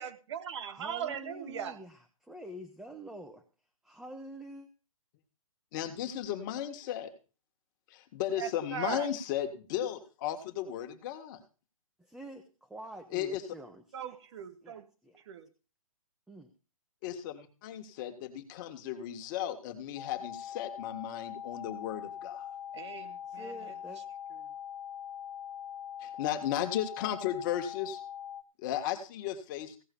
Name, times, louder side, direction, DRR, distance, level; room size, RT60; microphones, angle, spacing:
voice 1, 0.0-1.8 8.3-9.1 13.9-14.8 15.3-15.5 22.7-23.7, right 8 dB, 50° right, 10 dB, 1.5 m, -39 dB
voice 2, 0.7-3.4 3.8-4.7 12.0-14.2 14.6-15.2 16.3-16.5 23.3-24.0, right 1 dB, 5° right, 5 dB, 1.1 m, -47 dB
voice 3, 5.7-7.1 7.9-11.4 13.1-13.4 17.0-22.5 26.0-28.0 28.6-29.8, left 11 dB, 35° left, 7 dB, 1.8 m, -35 dB
sound 1, 20.0-28.4, left 9 dB, 85° left, 1.5 m, -42 dB
16.5 x 5.5 x 7.1 m, 0.35 s
hypercardioid pair, 140°, 18 cm